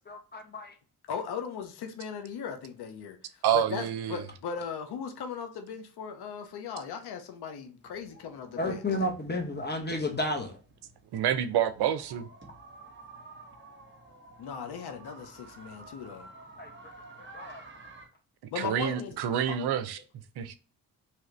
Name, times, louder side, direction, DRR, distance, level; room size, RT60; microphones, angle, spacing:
voice 1, 0.1-0.7 8.6-10.6 16.6-16.7 17.2-17.6, left 1 dB, 25° left, 1.1 m, -32 dB
voice 2, 1.1-8.8 14.4-16.3 18.5-19.2 19.5-19.6, left 6 dB, 70° left, 0.7 m, -38 dB
voice 3, 3.4-4.2 11.1-12.3 18.6-20.0 20.4-20.6, right 10 dB, 70° right, 0.6 m, -28 dB
sound 1, 7.8-18.1, right 2 dB, 30° right, 1.1 m, -52 dB
2.9 x 2.4 x 3.1 m
supercardioid pair, 40°, 41 cm